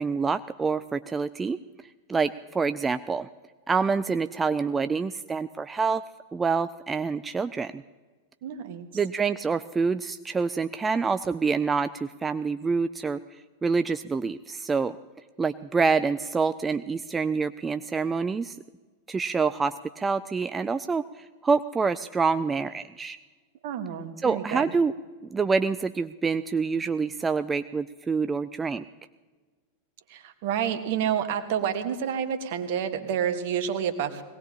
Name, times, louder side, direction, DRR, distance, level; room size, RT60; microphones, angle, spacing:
voice 1, 0.0-1.6 2.1-3.3 3.7-6.0 6.3-7.8 8.9-15.0 15.4-18.6 19.1-23.2 24.2-24.9 25.3-28.9, right 4 dB, 15° right, 11 dB, 0.4 m, -27 dB
voice 2, 8.4-8.9 23.6-24.6 30.1-34.2, right 8 dB, 50° right, 8 dB, 1.5 m, -29 dB
22.0 x 18.5 x 2.9 m, 1.4 s
figure-of-eight pair, 90°, 0 cm